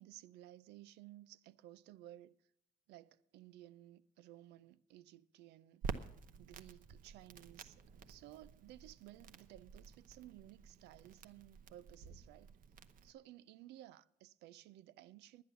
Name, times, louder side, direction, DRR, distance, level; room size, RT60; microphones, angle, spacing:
voice 1, 0.0-2.3 2.9-5.9 6.4-12.5 13.0-15.4, right 14 dB, 85° right, 0.5 m, -57 dB
Crackle, 5.8-13.1, right 5 dB, 55° right, 0.8 m, -50 dB
10.5 x 9.5 x 6.8 m
cardioid pair, 110°, 17 cm